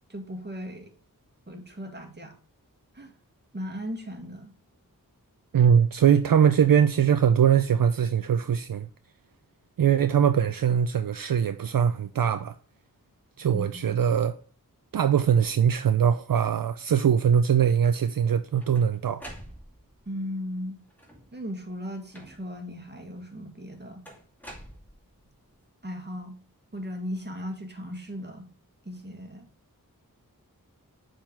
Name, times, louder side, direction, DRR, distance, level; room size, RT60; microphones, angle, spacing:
voice 1, 0.1-0.9 1.5-2.4 2.9-3.1 3.5-4.5 13.5-14.0 20.0-20.8 21.3-24.0 25.8-26.4 26.7-28.5 28.8-29.5, equal, 30° right, 1.7 m, -37 dB
voice 2, 5.5-8.9 9.8-12.5 13.4-14.4 14.9-19.2, right 8 dB, 70° right, 0.5 m, -22 dB
sound 1, 18.2-20.0 20.9-21.4 22.1-22.7 24.1-25.3, right 1 dB, 5° left, 2.2 m, -47 dB
7.0 x 3.9 x 4.2 m
wide cardioid pair, 65°, 35 cm